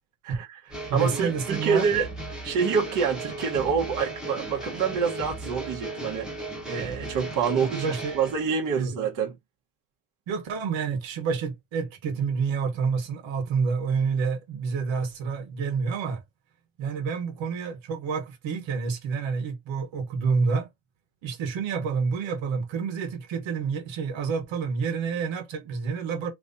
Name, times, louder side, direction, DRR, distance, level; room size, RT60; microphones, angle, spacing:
voice 1, 0.2-0.6 0.9-2.1 2.4-6.3 6.7-9.3, right 6 dB, 40° right, 1.1 m, -27 dB
sound 1, 0.7-8.4, right 2 dB, ahead, 1.1 m, -36 dB
voice 2, 0.9-1.9 7.7-8.2 8.7-8.9 10.3-16.2 16.8-20.7 21.2-26.3, right 5 dB, 65° right, 1.3 m, -28 dB
3.1 x 2.7 x 3.8 m
cardioid pair, 165°, 50 cm